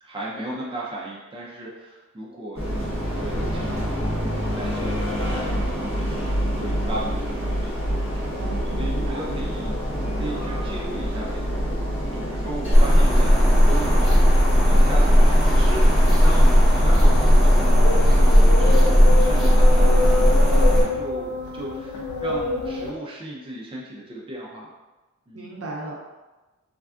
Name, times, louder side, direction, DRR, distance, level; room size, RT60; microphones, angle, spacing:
voice 1, 0.0-11.8 12.0-24.7 25.3-25.5, right 1 dB, 20° right, -5 dB, 0.5 m, -36 dB
sound 1, 2.5-17.5, equal, 45° left, 1.5 m, -27 dB
voice 2, 8.3-9.3 25.3-26.0, right 2 dB, 55° right, -3 dB, 0.7 m, -36 dB
sound 2, 12.7-20.8, equal, ahead, 0.9 m, -15 dB
sound 3, 16.8-22.9, left 3 dB, 75° left, 0.6 m, -28 dB
3.3 x 2.4 x 2.4 m, 1.1 s
wide cardioid pair, 95°, 29 cm